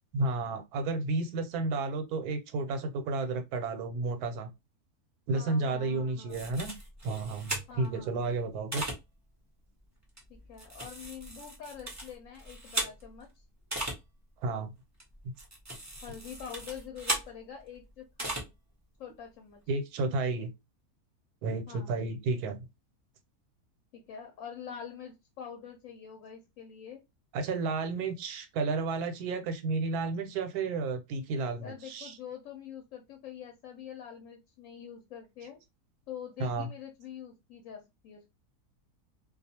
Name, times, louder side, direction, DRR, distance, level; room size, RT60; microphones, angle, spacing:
voice 1, 0.1-4.5 5.3-6.7 7.0-8.8 14.4-14.7 19.7-20.5 21.4-22.7 27.3-32.2 36.4-36.7, right 3 dB, 85° right, 1.1 m, -32 dB
voice 2, 5.3-6.5 7.7-8.5 10.3-13.3 16.0-18.5 19.0-19.6 21.7-22.0 23.9-27.0 31.6-35.6 36.1-38.3, left 8 dB, 70° left, 0.9 m, -45 dB
sound 1, 6.3-8.0 8.7-9.0 10.2-13.2 13.7-14.0 15.0-17.3 18.2-18.4, right 1 dB, 25° right, 0.4 m, -37 dB
2.3 x 2.3 x 2.7 m
omnidirectional pair, 1.6 m